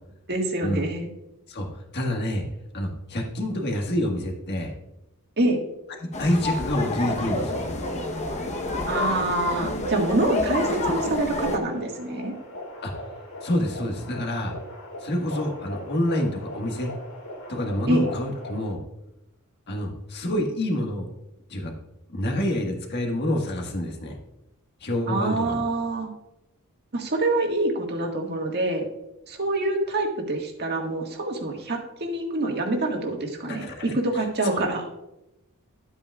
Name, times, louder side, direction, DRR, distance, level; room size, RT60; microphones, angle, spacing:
voice 1, 0.3-1.1 5.4-5.6 8.9-12.3 17.9-18.1 25.1-26.1 26.9-28.8 29.3-34.9, right 2 dB, 50° right, 2 dB, 1.6 m, -26 dB
voice 2, 1.5-2.4 2.7-4.7 6.0-7.9 12.8-13.1 13.4-14.6 15.0-16.9 17.5-18.8 19.7-21.1 21.5-21.7 22.1-24.2 24.8-25.6 33.5-33.9 34.5-34.6, left 1 dB, 50° left, 2 dB, 1.5 m, -27 dB
sound 1, 6.1-11.6, left 2 dB, 30° left, 0.9 m, -28 dB
sound 2, 6.5-18.7, left 1 dB, 70° left, 2.8 m, -40 dB
12.0 x 8.4 x 2.4 m, 0.89 s
head